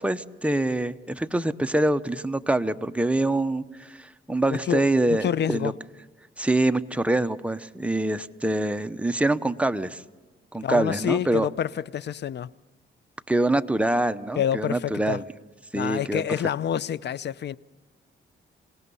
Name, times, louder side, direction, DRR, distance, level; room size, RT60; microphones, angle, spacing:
voice 1, 0.0-5.7 6.4-10.0 10.5-11.5 13.3-15.2 15.7-16.2, right 1 dB, 5° right, 0.9 m, -25 dB
voice 2, 4.5-5.7 10.6-12.5 14.4-15.2 15.7-17.6, left 9 dB, 55° left, 0.6 m, -28 dB
27.5 x 18.0 x 5.6 m
cardioid pair, 80°, 21 cm